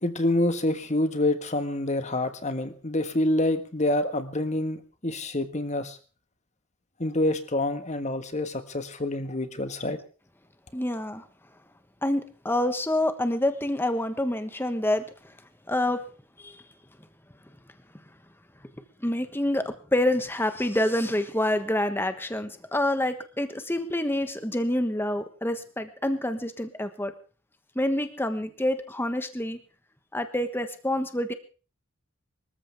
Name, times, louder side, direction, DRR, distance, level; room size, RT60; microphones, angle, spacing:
voice 1, 0.0-6.0 7.0-10.0, left 1 dB, 35° left, 9 dB, 1.6 m, -27 dB
voice 2, 10.7-11.2 12.0-15.0 15.7-16.0 16.4-16.6 19.0-27.1 27.7-29.6 30.1-31.3, left 1 dB, 10° left, 9 dB, 1.3 m, -27 dB
25.0 x 14.0 x 3.5 m, 0.36 s
head